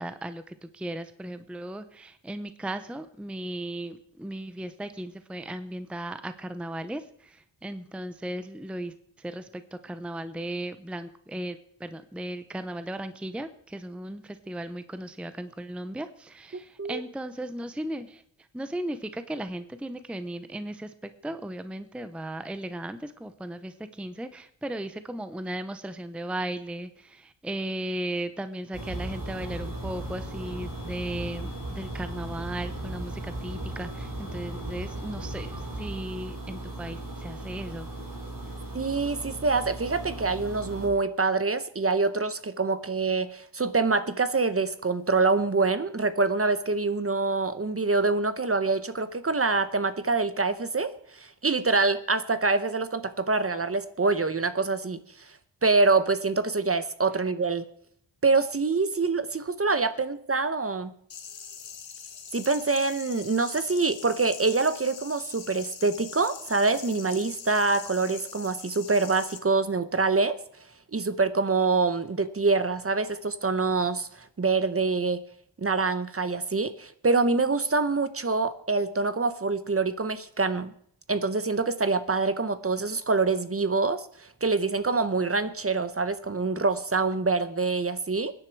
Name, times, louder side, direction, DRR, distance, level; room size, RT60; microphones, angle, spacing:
voice 1, 0.0-18.2 18.5-37.9, right 1 dB, 5° right, 11 dB, 0.6 m, -36 dB
voice 2, 16.5-17.0 38.7-55.0 55.6-57.7 58.2-60.9 62.3-70.4 70.9-75.2 75.6-80.7 81.1-88.3, right 3 dB, 30° right, 12 dB, 0.9 m, -25 dB
sound 1, 28.7-40.9, right 1 dB, 50° right, 4.9 m, -37 dB
sound 2, 61.1-69.4, left 7 dB, 90° left, 1.5 m, -43 dB
23.0 x 10.0 x 4.6 m, 0.65 s
wide cardioid pair, 145°, 44 cm